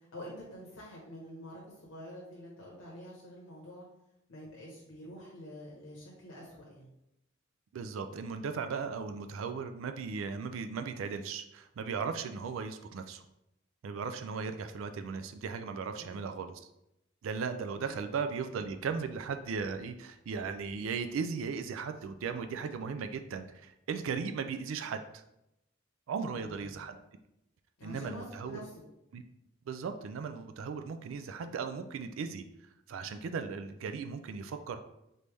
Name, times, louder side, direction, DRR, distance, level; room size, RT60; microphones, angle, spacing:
voice 1, 0.1-3.8 4.3-6.9 16.0-16.3 17.7-18.0 26.3-26.8 27.8-28.8, equal, 85° left, -5 dB, 1.1 m, -47 dB
voice 2, 7.7-13.2 13.8-16.7 17.2-25.2 26.1-27.0 27.8-28.6 29.1-29.2 29.7-32.4 32.9-34.8, right 5 dB, 75° right, 8 dB, 0.4 m, -37 dB
4.0 x 3.3 x 3.3 m, 0.85 s
head